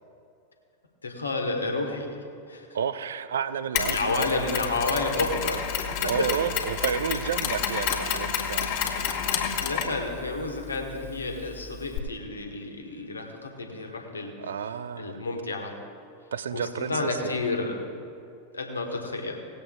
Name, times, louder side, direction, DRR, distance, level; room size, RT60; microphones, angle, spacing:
voice 1, 1.0-2.7 3.8-5.7 6.2-6.3 8.8-8.9 9.5-14.3 15.0-15.7 16.5-17.8 18.5-19.4, left 3 dB, 75° left, 2 dB, 1.7 m, -30 dB
voice 2, 2.7-4.0 6.0-8.7 14.4-15.2 16.3-17.3, right 8 dB, 65° right, 14 dB, 0.5 m, -30 dB
Mechanisms, 3.7-12.0, left 7 dB, 45° left, 2.0 m, -30 dB
19.0 x 8.1 x 3.8 m, 2.6 s
figure-of-eight pair, 90°, 0 cm